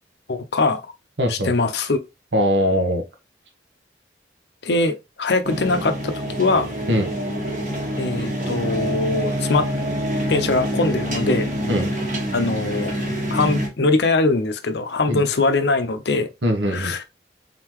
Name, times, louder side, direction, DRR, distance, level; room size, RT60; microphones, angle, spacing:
voice 1, 0.3-0.8 1.3-2.0 4.6-6.7 8.0-9.6 10.3-11.5 12.3-12.9 13.3-16.3 16.7-17.0, left 3 dB, 70° left, 0.7 m, -21 dB
voice 2, 1.2-1.5 2.3-3.0 6.9-7.1 11.7-11.9 15.1-15.2 16.4-16.9, equal, 80° right, 1.3 m, -21 dB
sound 1, 5.4-13.7, equal, 45° right, 1.5 m, -26 dB
4.0 x 3.8 x 3.0 m
head